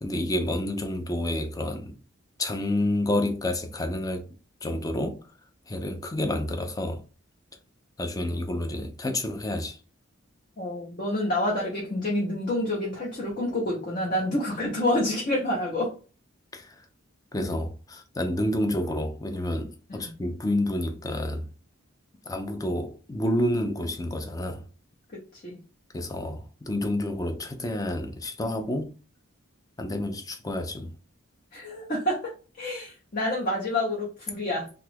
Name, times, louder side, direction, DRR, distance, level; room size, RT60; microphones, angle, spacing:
voice 1, 0.0-2.0 2.4-4.3 4.6-5.2 5.7-7.0 8.0-9.8 16.5-16.9 17.3-21.5 22.2-24.6 25.9-28.9 29.8-30.9, left 1 dB, 15° left, 0.4 m, -29 dB
voice 2, 10.6-15.9 19.9-20.1 25.1-25.6 31.5-32.3 32.6-34.7, left 1 dB, 40° left, 0.7 m, -28 dB
2.9 x 2.4 x 3.3 m
head